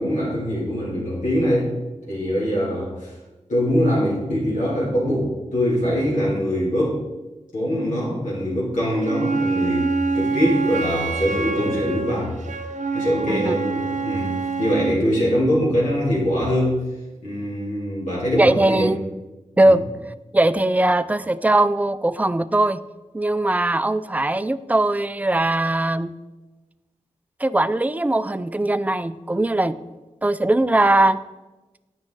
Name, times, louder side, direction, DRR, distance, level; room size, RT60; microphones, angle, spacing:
voice 1, 0.0-1.7 2.1-3.1 3.5-7.0 7.5-12.4 12.9-16.8 17.2-18.9 19.6-19.8, equal, 90° left, -6 dB, 2.6 m, -23 dB
Wind instrument woodwind instrument, 9.0-15.0, right 4 dB, 75° right, 0.8 m, -26 dB
voice 2, 18.4-19.0 19.6-19.8 20.3-22.8 23.1-26.1 27.4-29.8 30.2-31.2, right 2 dB, 10° right, 15 dB, 0.3 m, -20 dB
8.8 x 5.8 x 3.8 m, 1.1 s
cardioid pair, 55°, 13 cm